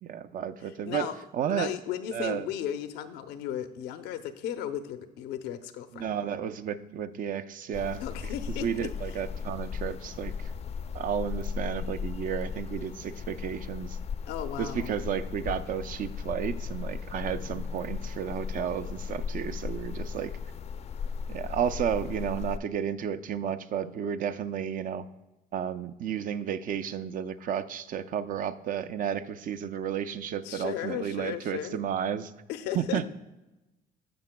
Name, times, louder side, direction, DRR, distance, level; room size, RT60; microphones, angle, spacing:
voice 1, 0.0-1.1 1.3-1.7 2.1-2.4 5.9-8.0 8.6-10.5 10.9-14.0 14.6-20.3 21.3-25.0 25.5-32.3 32.7-33.1, right 8 dB, 55° right, 11 dB, 0.5 m, -32 dB
voice 2, 0.9-1.2 1.5-6.1 8.0-8.7 14.3-14.9 17.4-17.7 30.4-31.8 32.5-33.1, left 10 dB, 90° left, 9 dB, 0.7 m, -35 dB
sound 1, 7.7-22.6, left 6 dB, 40° left, 0.4 m, -36 dB
14.5 x 5.9 x 2.2 m, 1.0 s
cardioid pair, 110°, 17 cm